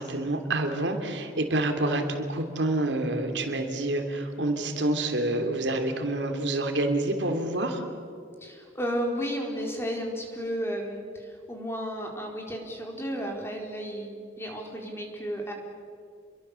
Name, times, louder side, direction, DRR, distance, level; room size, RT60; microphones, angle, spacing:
voice 1, 0.0-7.8, right 2 dB, 80° right, 5 dB, 3.0 m, -27 dB
voice 2, 8.4-14.1 14.4-15.5, equal, 15° left, 1 dB, 4.3 m, -33 dB
29.5 x 23.0 x 7.0 m, 2.3 s
head